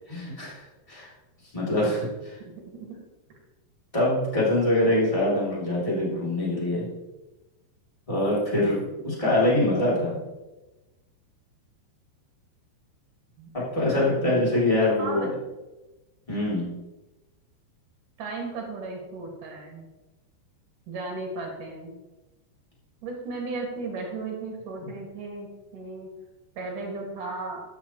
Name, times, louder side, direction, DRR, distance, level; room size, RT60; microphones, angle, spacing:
voice 1, 0.1-0.6 0.9-1.1 1.5-2.4 3.9-6.9 8.1-10.2 13.5-15.3 16.3-16.7, left 1 dB, 10° left, -6 dB, 1.8 m, -24 dB
voice 2, 2.4-3.0 13.4-14.2 15.0-15.3 18.2-19.9 20.9-21.9 23.0-25.5 25.7-26.1 26.5-27.6, right 3 dB, 55° right, 0 dB, 2.9 m, -35 dB
13.0 x 9.1 x 3.0 m, 1.1 s
omnidirectional pair, 5.3 m